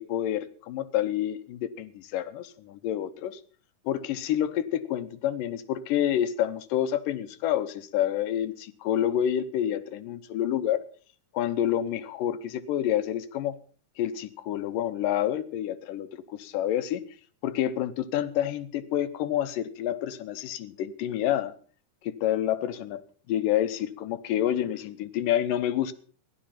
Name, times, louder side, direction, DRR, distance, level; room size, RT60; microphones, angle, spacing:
voice 1, 0.0-3.4 3.9-10.8 11.3-13.6 14.0-17.0 17.4-21.5 22.0-23.0 23.3-25.9, left 11 dB, 85° left, 13 dB, 2.6 m, -28 dB
15.5 x 11.5 x 5.8 m, 0.44 s
omnidirectional pair, 3.8 m